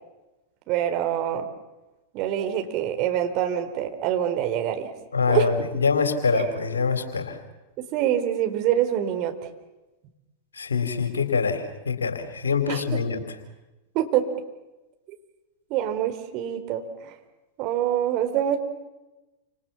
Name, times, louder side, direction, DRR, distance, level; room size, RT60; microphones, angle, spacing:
voice 1, 0.7-1.5 2.1-4.9 5.3-5.5 6.3-6.4 7.8-9.4 12.7-13.0 13.9-14.3 15.7-17.2 17.6-18.6, right 11 dB, 40° right, 6 dB, 4.3 m, -25 dB
voice 2, 5.1-7.4 10.5-13.2, left 5 dB, 75° left, 8 dB, 4.0 m, -24 dB
29.0 x 27.0 x 7.3 m, 1.0 s
figure-of-eight pair, 95°, 0 cm